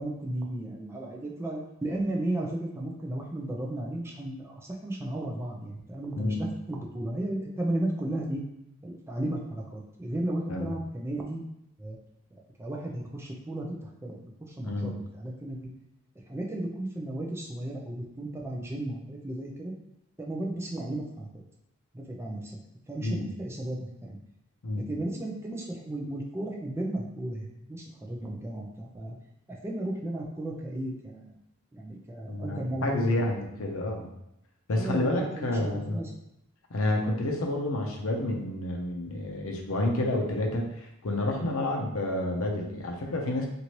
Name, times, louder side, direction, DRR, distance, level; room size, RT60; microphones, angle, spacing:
voice 1, 0.0-6.4 6.7-8.4 8.8-11.4 11.8-12.0 12.3-14.1 14.6-15.7 16.3-19.7 20.2-21.4 21.9-22.6 22.9-24.2 24.8-29.2 29.5-31.3 31.7-33.3 33.5-33.7 34.7-36.1, right 1 dB, 10° right, -1 dB, 0.4 m, -34 dB
voice 2, 32.3-34.1 34.7-36.0 36.7-43.5, left 1 dB, 70° left, 1 dB, 0.6 m, -29 dB
3.0 x 2.6 x 2.8 m, 0.80 s
head